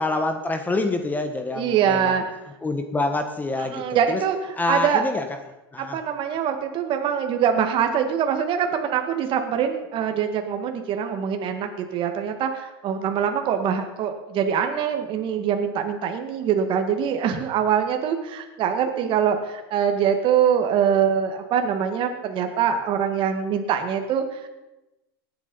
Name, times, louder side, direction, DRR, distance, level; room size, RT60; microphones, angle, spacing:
voice 1, 0.0-2.2 2.6-4.2 4.6-5.2 5.7-6.0, left 2 dB, 15° left, 7 dB, 1.2 m, -26 dB
voice 2, 1.5-2.2 3.6-4.4 4.7-5.0 5.8-24.5, right 8 dB, 40° right, 5 dB, 2.0 m, -23 dB
18.5 x 9.2 x 5.5 m, 0.99 s
supercardioid pair, 125°, 13 cm